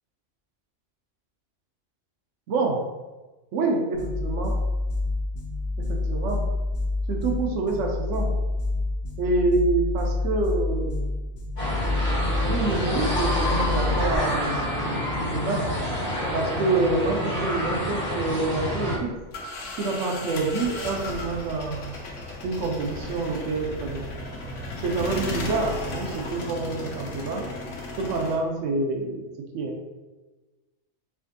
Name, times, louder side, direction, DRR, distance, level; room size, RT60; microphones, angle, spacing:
voice 1, 2.5-2.8 3.5-4.5 5.9-6.4 7.1-8.3 9.2-11.0 12.4-15.7 16.3-19.1 19.8-21.9 22.4-24.0 24.8-27.4 28.0-29.3 29.5-29.7, right 3 dB, 90° right, 1 dB, 1.0 m, -27 dB
sound 1, 3.9-14.2, left 2 dB, 65° left, 0.8 m, -28 dB
sound 2, 11.6-19.0, left 1 dB, 20° left, 1.4 m, -28 dB
sound 3, 19.0-28.4, left 2 dB, 90° left, 1.1 m, -35 dB
5.0 x 2.5 x 2.6 m, 1.2 s
omnidirectional pair, 1.2 m